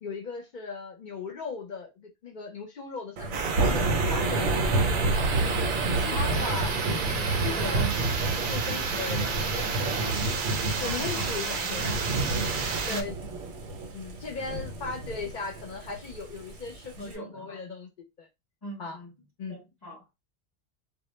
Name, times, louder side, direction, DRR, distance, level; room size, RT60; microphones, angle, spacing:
voice 1, 0.0-5.3 6.0-6.7 7.4-7.9 8.5-9.8 10.8-12.1 12.6-13.1 13.9-17.9 18.2-18.3 18.8-19.0 19.4-19.6, left 5 dB, 55° left, 0.6 m, -37 dB
Thunder / Rain, 3.2-17.1, right 2 dB, 85° right, 1.0 m, -30 dB
sound 1, 3.3-13.0, right 5 dB, 55° right, 0.6 m, -31 dB
voice 2, 5.9-6.7 7.1-8.1 9.8-10.4 10.7-12.1 12.8-13.1 14.5-14.6 17.0-17.6 18.6-19.1 19.5-20.1, equal, 20° left, 0.8 m, -42 dB
2.2 x 2.1 x 3.0 m
omnidirectional pair, 1.2 m